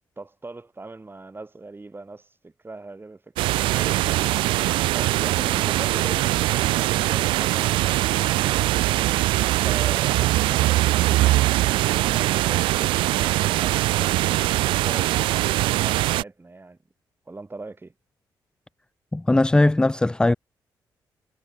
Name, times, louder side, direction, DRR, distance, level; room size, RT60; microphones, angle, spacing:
voice 1, 0.2-4.4 4.9-9.1 9.6-15.1 15.4-16.8 17.3-17.9, right 3 dB, 25° right, 4.4 m, -40 dB
sound 1, 3.4-16.2, right 17 dB, 90° right, 0.4 m, -22 dB
voice 2, 19.1-20.3, left 2 dB, 10° left, 0.3 m, -19 dB
supercardioid pair, 60°, 8 cm